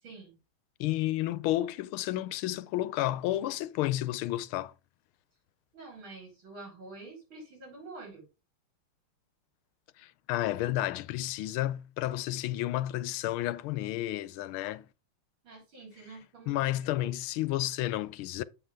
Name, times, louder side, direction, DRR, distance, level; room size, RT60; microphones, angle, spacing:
voice 1, 0.0-0.3 5.7-8.3 15.4-16.6 16.9-17.1, right 3 dB, 70° right, 5.3 m, -47 dB
voice 2, 0.8-4.7 10.0-14.9 16.5-18.4, left 15 dB, 90° left, 1.5 m, -31 dB
7.9 x 5.9 x 3.4 m
omnidirectional pair, 2.3 m